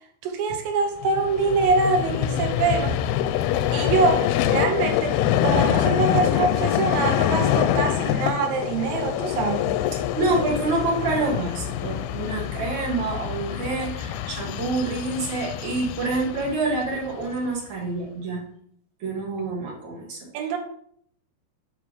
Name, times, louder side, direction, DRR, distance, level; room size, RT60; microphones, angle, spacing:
voice 1, 0.2-3.0 3.7-4.2 4.5-9.7 20.3-20.6, right 4 dB, 70° right, 4 dB, 2.6 m, -24 dB
Vehicle, 1.0-17.4, left 11 dB, 90° left, 2.5 m, -25 dB
voice 2, 10.2-18.4 19.0-20.3, right 3 dB, 50° right, -2 dB, 2.9 m, -27 dB
9.2 x 3.6 x 5.0 m, 0.65 s
omnidirectional pair, 4.4 m